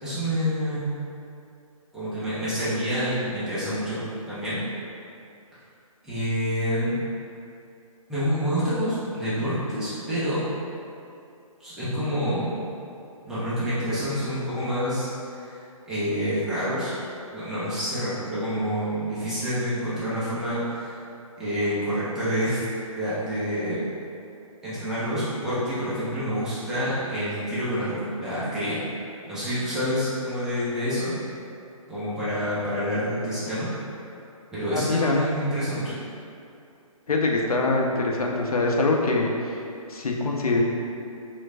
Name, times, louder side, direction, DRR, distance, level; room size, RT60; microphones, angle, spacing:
voice 1, 0.0-1.0 1.9-4.0 4.3-4.6 6.0-6.9 8.1-10.4 11.6-12.6 13.2-15.6 15.9-16.9 17.3-21.0 21.4-22.6 22.9-23.8 24.6-28.8 29.3-31.1 31.9-33.7 34.5-36.0, equal, 5° right, -13 dB, 0.4 m, -27 dB
voice 2, 34.7-35.2 37.1-40.6, left 3 dB, 90° left, 0 dB, 0.5 m, -24 dB
3.1 x 3.1 x 2.5 m, 2.6 s
figure-of-eight pair, 145°, 18 cm